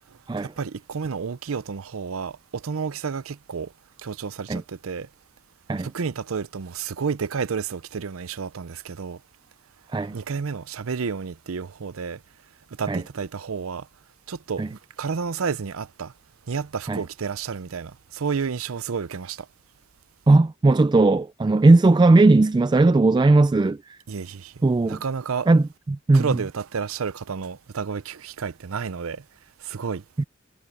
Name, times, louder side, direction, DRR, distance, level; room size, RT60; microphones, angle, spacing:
voice 1, 0.1-3.7 4.0-5.1 5.8-9.2 10.1-12.2 12.7-13.9 14.3-16.1 16.5-19.5 24.1-25.5 26.1-29.2 29.6-30.0, right 5 dB, 90° right, 0.6 m, -31 dB
voice 2, 20.3-23.8 24.6-25.0 25.5-26.2 30.2-30.3, right 2 dB, 20° right, 0.3 m, -17 dB
head